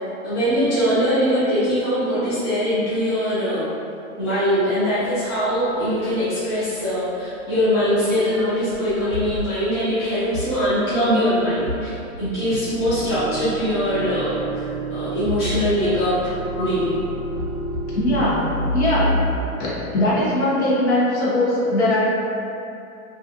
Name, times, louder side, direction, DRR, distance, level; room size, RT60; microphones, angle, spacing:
voice 1, 0.2-3.7 4.2-16.1 16.6-17.0, equal, 20° left, -14 dB, 0.4 m, -22 dB
sound 1, 5.5-5.6 7.4-7.5 7.6-7.9 8.3-8.4 8.7-9.7 10.2-19.4, right 1 dB, 80° right, 0.6 m, -28 dB
voice 2, 17.9-18.5 18.7-19.2 19.6-22.1, left 1 dB, 50° left, -7 dB, 0.8 m, -20 dB
2.5 x 2.3 x 2.5 m, 2.6 s
hypercardioid pair, 155°, 43 cm